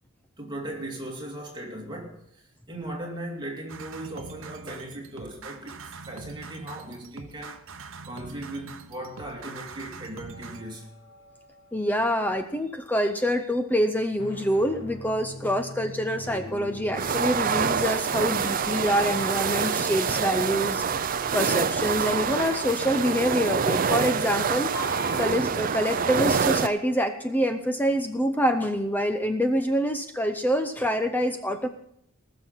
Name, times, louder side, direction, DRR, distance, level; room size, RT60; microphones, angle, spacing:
voice 1, 0.4-7.6 8.1-10.9, right 1 dB, 20° right, 2.4 m, -38 dB
sound 1, 3.7-10.6, right 4 dB, 65° right, 0.9 m, -43 dB
sound 2, 10.3-13.0 14.0-20.8 24.7-28.9, left 2 dB, 50° left, 1.8 m, -45 dB
voice 2, 11.7-20.8 21.2-24.7 25.2-31.7, equal, 10° left, 0.6 m, -26 dB
sound 3, 16.9-26.7, right 6 dB, 40° right, 0.5 m, -26 dB
19.0 x 6.6 x 5.6 m
head